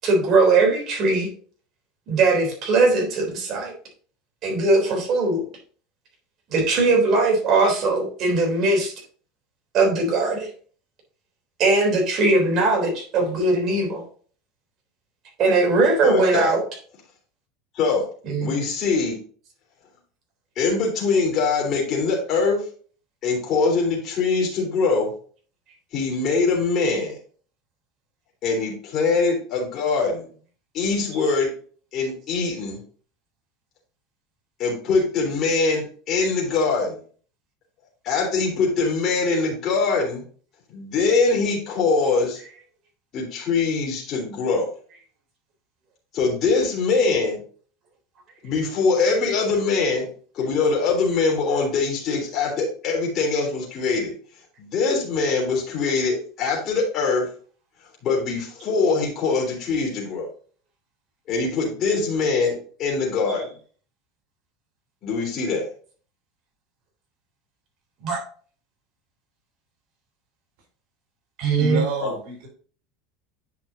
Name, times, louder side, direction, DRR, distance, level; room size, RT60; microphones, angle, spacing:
voice 1, 0.0-1.3 2.1-3.7 4.4-5.4 6.5-8.9 9.7-10.5 11.6-14.0 15.4-16.6 18.2-18.6 68.0-68.2 71.4-71.8, right 3 dB, 40° right, 1 dB, 3.4 m, -20 dB
voice 2, 16.0-16.5 17.7-18.1 18.4-19.2 20.5-22.6 23.2-25.1 25.9-27.2 28.4-30.3 30.7-31.5 31.9-32.8 34.6-37.0 38.0-40.2 40.7-42.4 43.1-44.7 46.1-47.4 48.4-50.0 50.3-54.1 54.6-57.3 58.0-60.3 61.3-63.5 65.0-65.7 72.0-72.1, left 4 dB, 35° left, -2 dB, 3.3 m, -23 dB
voice 3, 71.6-72.5, right 2 dB, 65° right, -1 dB, 4.0 m, -28 dB
9.5 x 5.6 x 2.7 m, 0.43 s
supercardioid pair, 155°, 0 cm